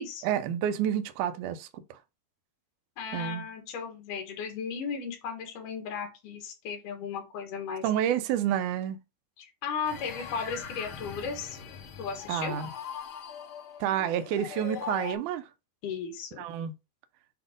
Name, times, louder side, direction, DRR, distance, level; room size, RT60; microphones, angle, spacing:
voice 1, 0.2-2.0 3.1-3.5 7.8-9.0 12.3-12.7 13.8-15.5 16.4-16.7, right 10 dB, 75° right, 2.1 m, -29 dB
voice 2, 3.0-7.8 9.4-11.6 12.0-12.5 15.8-16.4, left 6 dB, 70° left, 3.2 m, -35 dB
sound 1, 9.8-15.1, left 7 dB, 55° left, 1.6 m, -41 dB
8.1 x 2.9 x 5.1 m
omnidirectional pair, 3.8 m